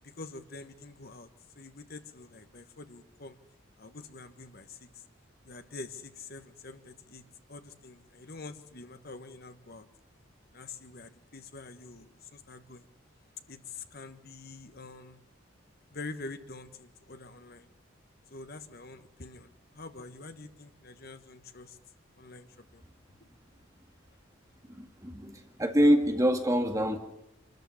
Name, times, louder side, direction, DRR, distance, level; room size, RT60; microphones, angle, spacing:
voice 1, 0.0-1.3 1.5-3.4 3.8-5.0 5.4-7.2 7.5-9.9 10.5-12.9 13.5-15.2 15.9-17.7 18.3-21.8 22.2-22.8, left 3 dB, 50° left, 9 dB, 1.5 m, -46 dB
voice 2, 24.7-27.0, equal, 15° right, 5 dB, 2.0 m, -25 dB
26.0 x 13.5 x 9.9 m, 0.88 s
head